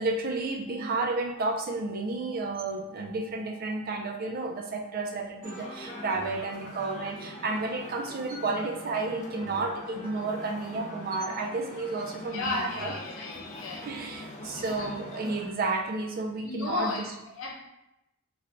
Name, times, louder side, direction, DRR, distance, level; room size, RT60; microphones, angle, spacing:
voice 1, 0.0-12.9 13.8-16.9, right 3 dB, 45° right, 2 dB, 0.4 m, -32 dB
sound 1, 0.7-10.9, right 21 dB, 25° right, 0.9 m, -55 dB
sound 2, 5.4-15.5, left 1 dB, 35° left, 0.5 m, -43 dB
voice 2, 12.2-14.9 16.4-17.5, left 3 dB, 65° left, -2 dB, 0.8 m, -35 dB
3.3 x 2.2 x 3.7 m, 0.86 s
head